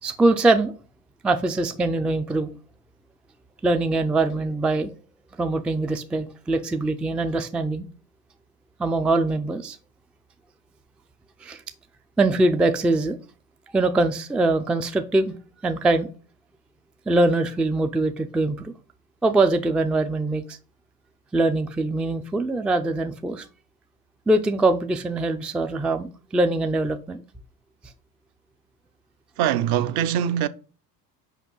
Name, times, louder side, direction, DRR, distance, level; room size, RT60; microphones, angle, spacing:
voice 1, 0.0-0.7 1.2-2.5 3.6-4.9 5.4-7.9 8.8-9.8 11.4-11.6 12.2-13.2 13.7-15.3 15.6-16.1 17.1-18.7 19.2-20.6 21.3-23.4 24.3-27.2, right 2 dB, ahead, 0.4 m, -23 dB
voice 2, 29.4-30.5, right 10 dB, 50° right, 0.8 m, -22 dB
6.1 x 5.0 x 5.4 m
hypercardioid pair, 85°, 49 cm